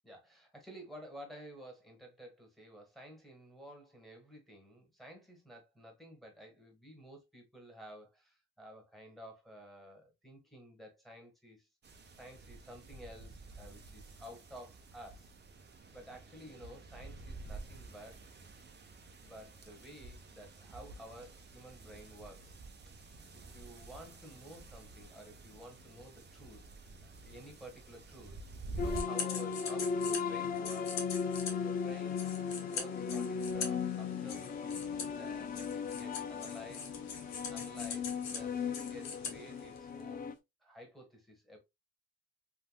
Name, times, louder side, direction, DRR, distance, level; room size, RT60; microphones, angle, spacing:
voice 1, 0.0-11.7 12.2-15.3 15.9-18.2 19.2-22.6 23.3-26.6 27.0-28.4 28.7-32.3 32.7-36.9 37.5-40.3 40.6-41.6, equal, ahead, 1.5 m, -52 dB
sound 1, 11.8-29.0, right 2 dB, 35° right, 0.7 m, -49 dB
sound 2, 28.8-40.3, left 6 dB, 30° left, 0.3 m, -37 dB
sound 3, 28.9-40.2, left 6 dB, 65° left, 0.9 m, -43 dB
3.5 x 2.6 x 2.2 m
cardioid pair, 90°, 30 cm